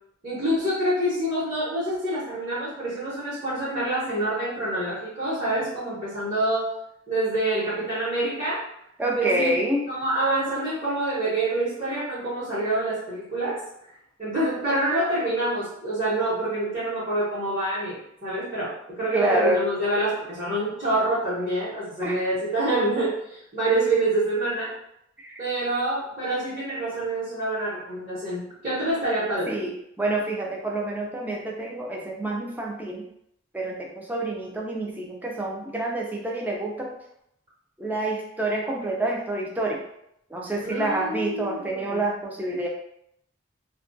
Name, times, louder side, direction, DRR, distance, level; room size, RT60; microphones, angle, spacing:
voice 1, 0.2-6.7 7.1-8.6 9.1-9.6 9.9-13.6 14.2-24.7 25.4-29.6 40.6-42.0, right 1 dB, 35° right, -13 dB, 0.9 m, -26 dB
voice 2, 9.0-9.9 19.1-19.6 22.0-22.2 25.2-25.4 29.5-29.7 30.0-33.0 33.5-36.9 37.8-39.8 40.3-42.7, right 1 dB, 10° right, -2 dB, 0.3 m, -27 dB
2.2 x 2.2 x 2.5 m, 0.76 s
head